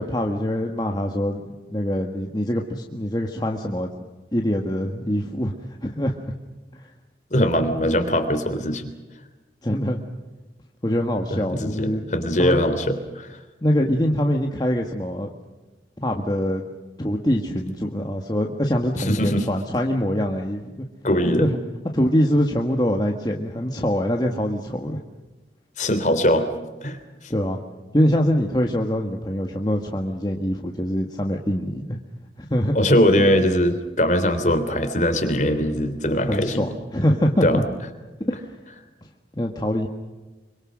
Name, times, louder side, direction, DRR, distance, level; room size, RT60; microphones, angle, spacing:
voice 1, 0.0-3.9 4.3-5.5 5.8-6.2 6.8-6.9 9.6-10.0 10.8-12.0 12.4-12.6 13.6-15.3 16.0-16.6 17.0-20.8 21.4-21.6 21.9-25.0 27.3-27.6 27.9-32.0 32.5-32.7 36.3-37.6 38.3-38.4 39.3-39.9, equal, 25° left, 1 dB, 1.6 m, -24 dB
voice 2, 7.3-8.9 11.5-13.4 19.0-19.5 21.0-21.5 25.8-26.5 26.8-27.3 32.7-36.7 37.4-37.6, equal, 45° left, 8 dB, 3.2 m, -21 dB
26.5 x 24.5 x 6.4 m, 1.2 s
head